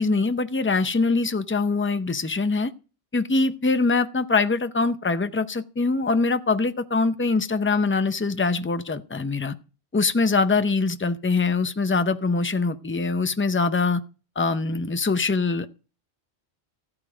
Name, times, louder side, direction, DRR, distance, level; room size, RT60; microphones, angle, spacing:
voice 1, 0.0-2.7 3.1-9.5 9.9-14.0 14.4-15.7, left 3 dB, 15° left, 0.4 m, -23 dB
14.0 x 8.8 x 5.0 m
omnidirectional pair, 1.1 m